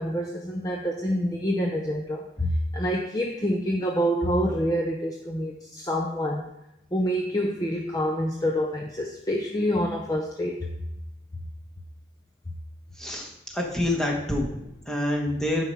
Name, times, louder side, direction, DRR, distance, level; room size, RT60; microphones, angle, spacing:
voice 1, 0.0-6.5 6.9-10.6, equal, 20° left, 0 dB, 0.6 m, -27 dB
voice 2, 13.0-15.6, left 1 dB, 5° left, -2 dB, 1.4 m, -27 dB
9.5 x 4.6 x 5.5 m, 0.90 s
head